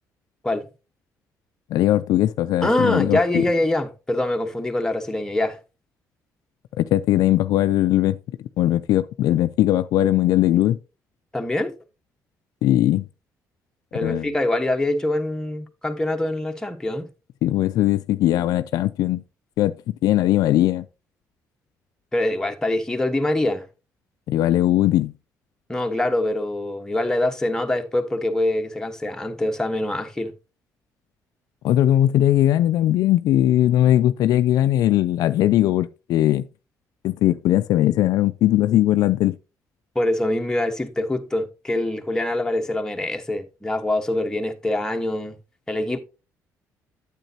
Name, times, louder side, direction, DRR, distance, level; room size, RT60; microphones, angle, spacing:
voice 1, 1.7-3.4 6.8-8.2 8.6-10.8 12.6-13.0 14.0-14.3 17.4-19.2 19.6-19.7 20.0-20.9 24.3-25.1 31.6-36.4 37.0-39.4, left 13 dB, 75° left, 0.4 m, -19 dB
voice 2, 2.6-5.6 11.3-11.7 13.9-17.1 22.1-23.7 25.7-30.3 39.9-45.4 45.7-46.0, left 1 dB, 10° left, 1.2 m, -24 dB
9.1 x 8.1 x 2.8 m
cardioid pair, 80°, 7 cm